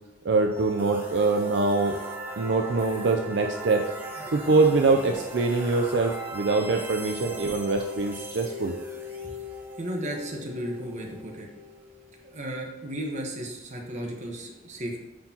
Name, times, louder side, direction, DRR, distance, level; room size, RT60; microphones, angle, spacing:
voice 1, 0.2-2.0 2.4-3.9 4.3-8.8, right 3 dB, 65° right, 3 dB, 0.4 m, -24 dB
sound 1, 0.5-12.4, equal, 10° right, 1.0 m, -38 dB
voice 2, 9.8-11.5 12.2-15.0, right 1 dB, 40° right, 1 dB, 1.1 m, -34 dB
9.3 x 4.4 x 2.9 m, 1.1 s
head